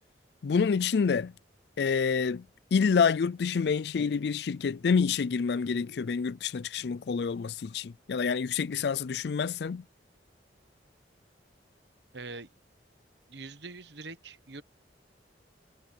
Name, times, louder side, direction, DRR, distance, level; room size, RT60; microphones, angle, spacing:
voice 1, 0.4-1.3 1.8-2.4 2.7-9.8, left 5 dB, 60° left, 0.4 m, -27 dB
voice 2, 12.1-12.5 13.3-14.6, right 3 dB, 70° right, 1.3 m, -43 dB
head